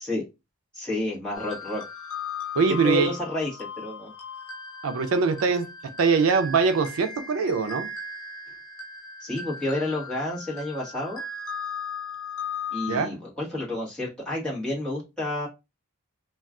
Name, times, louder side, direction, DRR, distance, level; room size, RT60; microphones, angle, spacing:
voice 1, 0.7-1.8 2.8-4.1 9.2-11.2 12.7-15.5, left 1 dB, 5° left, 1.1 m, -30 dB
sound 1, 1.3-13.0, left 4 dB, 80° left, 0.7 m, -37 dB
voice 2, 2.6-3.1 4.8-5.7 6.0-7.9 12.9-13.2, right 5 dB, 80° right, 0.4 m, -22 dB
2.3 x 2.3 x 3.5 m
head